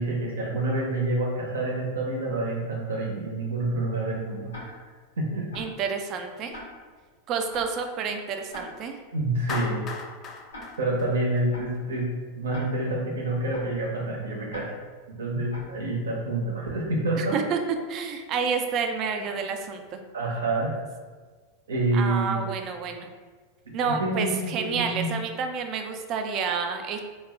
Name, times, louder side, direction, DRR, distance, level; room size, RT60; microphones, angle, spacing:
voice 1, 0.0-4.8 5.2-5.5 9.1-9.8 10.8-12.1 12.3-14.7 15.1-17.4 20.1-20.7 21.7-22.6 23.7-25.1, right 2 dB, 85° right, -1 dB, 0.6 m, -28 dB
Tick-tock, 4.5-4.6 5.5-5.6 6.5-6.6 7.5-7.6 8.5-8.6 9.5-9.6 10.5-10.6 11.5-11.6 12.5-12.6 13.5-13.6 14.5-14.6 15.5-15.6, left 1 dB, 85° left, 0.8 m, -41 dB
voice 2, 5.6-6.6 7.3-9.0 17.2-17.6 17.9-20.0 21.9-23.1 23.7-27.0, right 5 dB, 45° right, 5 dB, 0.3 m, -29 dB
Clapping, 9.5-11.8, left 4 dB, 35° left, 0.3 m, -36 dB
2.3 x 2.0 x 3.5 m, 1.5 s
hypercardioid pair, 100°, 0 cm